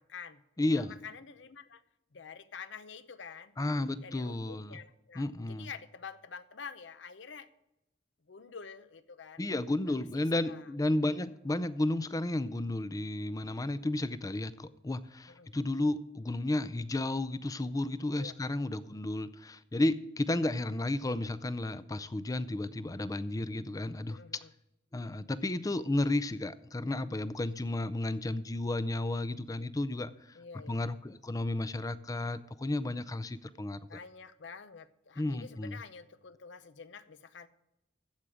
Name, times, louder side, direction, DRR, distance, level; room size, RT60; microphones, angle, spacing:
voice 1, 0.0-0.4 0.7-1.8 2.1-3.5 4.0-7.5 8.2-9.5 9.9-10.7 15.3-15.5 18.2-18.4 24.1-24.5 30.3-30.8 33.9-37.5, left 6 dB, 75° left, 13 dB, 0.7 m, -48 dB
voice 2, 0.6-0.9 3.6-4.8 5.2-5.7 9.4-24.2 24.9-30.1 30.7-33.8 35.2-35.8, left 2 dB, 20° left, 15 dB, 0.5 m, -32 dB
14.5 x 5.0 x 7.4 m, 0.90 s
head